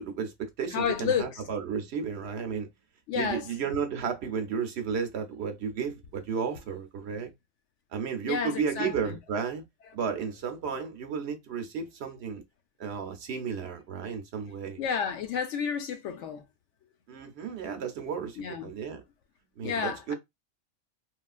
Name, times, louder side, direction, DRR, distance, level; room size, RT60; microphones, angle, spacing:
voice 1, 0.0-2.7 3.1-7.3 7.9-9.6 9.9-12.4 12.8-14.8 17.1-19.0 19.6-20.1, right 6 dB, 65° right, 0.8 m, -33 dB
voice 2, 0.7-1.4 3.1-3.5 8.2-9.2 14.8-16.4 18.4-18.7 19.6-20.1, left 7 dB, 75° left, 0.9 m, -31 dB
3.1 x 2.4 x 2.3 m
omnidirectional pair, 1.3 m